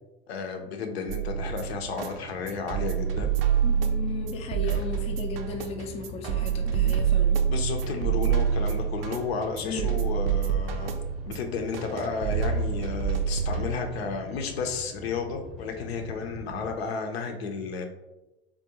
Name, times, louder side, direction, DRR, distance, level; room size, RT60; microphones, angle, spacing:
voice 1, 0.3-3.3 4.6-4.9 6.8-7.0 7.4-10.9 11.3-17.8, left 5 dB, 75° left, 4 dB, 0.6 m, -32 dB
sound 1, 1.1-14.1, right 8 dB, 65° right, 0.5 m, -27 dB
sound 2, 1.3-16.8, left 2 dB, ahead, 0.7 m, -44 dB
voice 2, 3.6-7.4 9.6-9.9, left 4 dB, 20° left, 3 dB, 0.4 m, -35 dB
3.6 x 2.2 x 2.8 m, 1.0 s
figure-of-eight pair, 85°, 31 cm